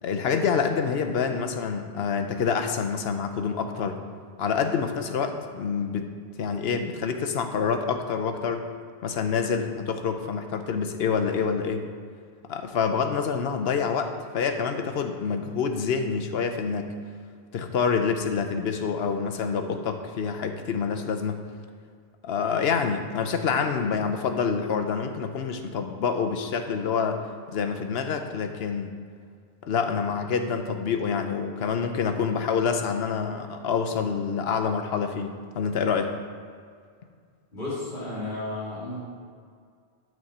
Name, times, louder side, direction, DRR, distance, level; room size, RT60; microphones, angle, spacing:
voice 1, 0.0-4.0 4.4-6.1 6.4-8.7 9.0-11.9 12.5-16.9 17.5-21.4 22.2-27.2 27.5-28.9 29.6-36.1, left 6 dB, 75° left, 6 dB, 1.0 m, -27 dB
voice 2, 37.5-39.0, left 2 dB, 50° left, -9 dB, 2.8 m, -33 dB
11.0 x 6.2 x 4.3 m, 2.1 s
omnidirectional pair, 1.1 m